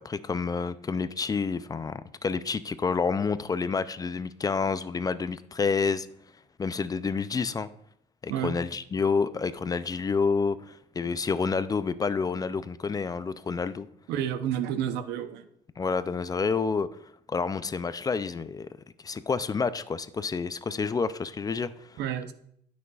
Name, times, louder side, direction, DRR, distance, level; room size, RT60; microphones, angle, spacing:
voice 1, 0.0-6.1 6.6-7.7 8.2-13.9 15.8-16.9 17.3-18.7 19.0-21.9, left 5 dB, 20° left, 0.3 m, -29 dB
voice 2, 8.3-8.6 14.1-15.5 22.0-22.3, right 10 dB, 90° right, 0.7 m, -30 dB
12.0 x 6.2 x 2.4 m
cardioid pair, 110°, 17 cm